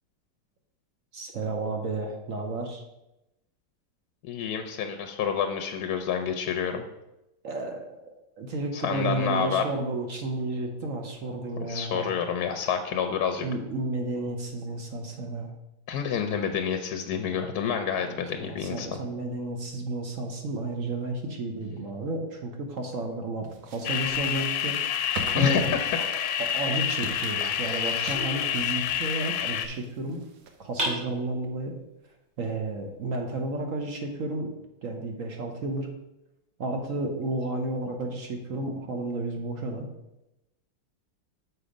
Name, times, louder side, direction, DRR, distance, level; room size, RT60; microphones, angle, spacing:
voice 1, 1.1-2.8 7.4-8.0 8.4-12.1 13.4-15.5 18.0-24.8 25.3-25.7 26.0-30.2 30.6-31.8 32.4-35.9 36.6-39.8, right 2 dB, 55° right, 3 dB, 1.1 m, -32 dB
voice 2, 4.3-6.8 8.7-9.6 11.7-13.4 15.9-19.0 25.4-25.8 27.4-28.2, left 7 dB, 70° left, 6 dB, 1.1 m, -29 dB
sound 1, 23.4-30.8, right 4 dB, 85° right, 1.5 m, -44 dB
sound 2, 23.8-29.7, left 9 dB, 90° left, 1.3 m, -28 dB
sound 3, 28.1-29.3 30.8-31.8, equal, 25° right, 2.8 m, -35 dB
6.9 x 4.7 x 5.1 m, 0.92 s
omnidirectional pair, 1.9 m